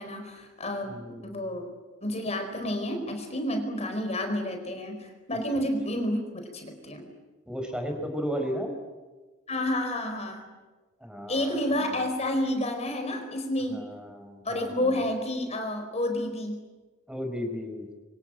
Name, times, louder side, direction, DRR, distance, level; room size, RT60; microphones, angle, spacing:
voice 1, 0.0-1.7 2.0-6.3 6.5-7.0 9.5-10.4 11.3-13.9 14.4-16.6, left 1 dB, 35° left, 6 dB, 4.6 m, -30 dB
voice 2, 0.9-1.5 5.6-5.7 7.5-8.7 11.0-11.9 13.7-15.0 17.1-17.9, equal, 5° right, 4 dB, 4.6 m, -35 dB
26.5 x 25.0 x 8.9 m, 1.3 s
head